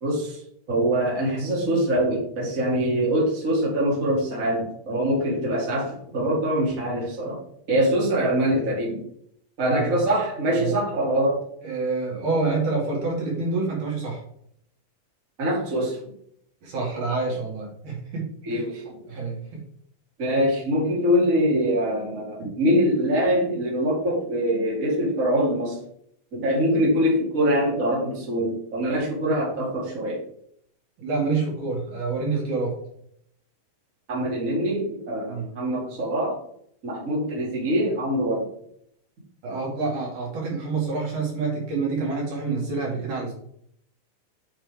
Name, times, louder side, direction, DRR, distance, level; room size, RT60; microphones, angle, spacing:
voice 1, 0.0-0.4 0.7-7.4 7.7-9.0 9.6-11.4 15.4-16.0 18.4-18.9 20.2-25.8 26.3-30.2 34.1-36.4 36.8-38.5, equal, 25° right, -4 dB, 2.7 m, -24 dB
voice 2, 9.7-10.1 10.5-10.8 11.6-14.2 16.6-18.6 19.1-19.6 22.4-22.5 31.0-32.8 35.3-35.5 39.4-43.4, right 4 dB, 60° right, -3 dB, 3.8 m, -27 dB
8.9 x 5.7 x 3.6 m, 0.68 s
omnidirectional pair, 4.0 m